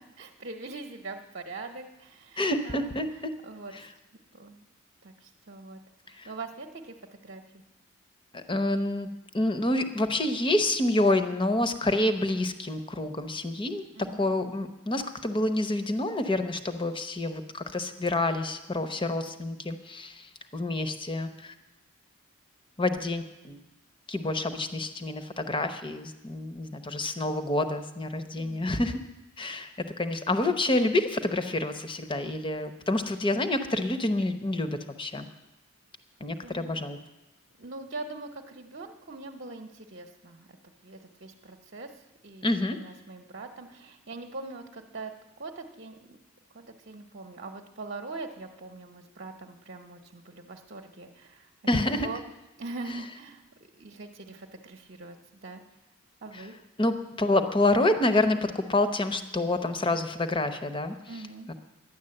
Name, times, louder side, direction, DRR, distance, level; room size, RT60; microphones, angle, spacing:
voice 1, 0.2-2.9 3.4-3.9 4.3-4.7 5.0-5.8 6.1-6.9 7.2-7.4 13.9-14.3 28.4-28.7 34.3-34.4 36.4-36.8 37.6-40.6 40.8-41.9 42.2-45.1 45.4-46.2 46.5-51.5 51.9-52.2 52.6-53.4 53.8-55.2 55.4-55.6 56.2-56.6 61.1-61.5, right 3 dB, 45° right, 3 dB, 0.9 m, -42 dB
voice 2, 2.4-3.1 3.7-3.8 6.2-6.3 8.3-9.1 9.3-13.8 14.2-21.5 22.8-23.6 24.1-29.0 29.4-29.7 30.0-35.3 36.2-37.0 42.4-42.8 51.7-52.1 56.3-56.4 56.8-61.0 61.5-61.6, left 2 dB, 25° left, 9 dB, 0.8 m, -28 dB
11.0 x 10.0 x 7.7 m, 1.0 s
head